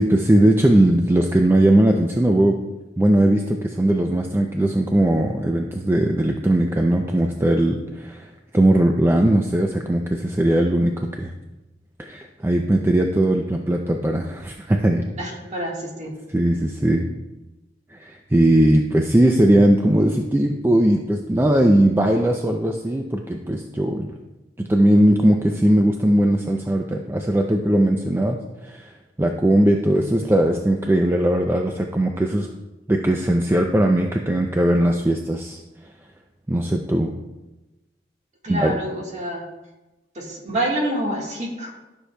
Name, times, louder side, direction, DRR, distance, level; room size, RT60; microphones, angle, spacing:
voice 1, 0.0-2.6 3.0-11.3 12.0-15.0 16.3-17.1 17.9-24.1 24.6-28.4 28.6-28.9 29.2-32.5 32.9-35.6 36.5-37.2 38.5-38.7, right 1 dB, 15° right, 3 dB, 0.4 m, -19 dB
voice 2, 15.2-16.1 38.4-39.4 40.1-41.7, right 1 dB, 40° right, -1 dB, 1.5 m, -27 dB
12.5 x 6.4 x 2.2 m, 1.1 s
head